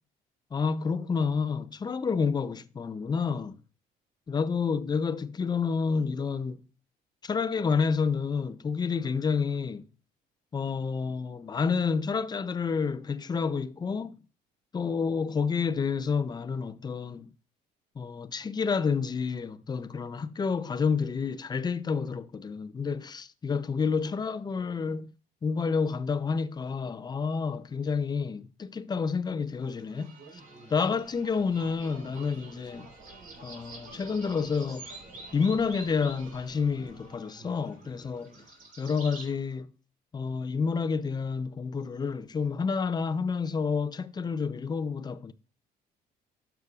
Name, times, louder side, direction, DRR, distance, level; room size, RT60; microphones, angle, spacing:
voice 1, 0.5-3.6 4.3-6.6 7.2-9.8 10.5-14.2 14.7-17.3 18.0-25.1 25.4-30.1 30.7-32.9 33.4-35.0 35.3-38.4 38.8-39.7 40.1-45.3, left 5 dB, 25° left, 0.5 m, -29 dB
sound 1, 29.6-39.3, right 3 dB, 50° right, 4.1 m, -48 dB
11.5 x 6.9 x 2.4 m
cardioid pair, 110°, 17 cm